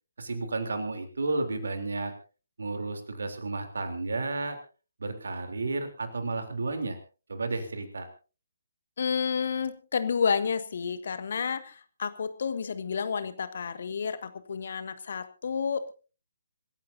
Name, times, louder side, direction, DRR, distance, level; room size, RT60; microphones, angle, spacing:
voice 1, 0.2-2.1 2.6-4.6 5.0-7.0 7.3-8.1, right 3 dB, 60° right, 7 dB, 3.4 m, -32 dB
voice 2, 9.0-15.9, left 6 dB, 50° left, 11 dB, 1.7 m, -30 dB
26.0 x 15.0 x 2.7 m, 0.35 s
figure-of-eight pair, 135°, 0 cm